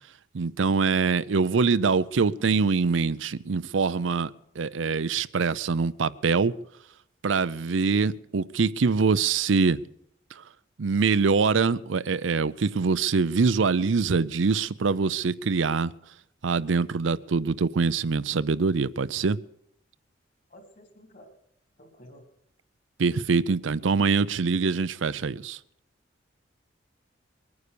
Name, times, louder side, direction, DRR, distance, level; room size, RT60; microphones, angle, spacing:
voice 1, 0.3-6.5 7.2-9.8 10.4-10.5 10.8-15.9 16.4-19.4 23.0-25.6, right 4 dB, 80° right, 0.5 m, -24 dB
voice 2, 20.5-21.3 21.8-22.2, equal, 45° left, 3.5 m, -51 dB
22.0 x 9.6 x 6.8 m
head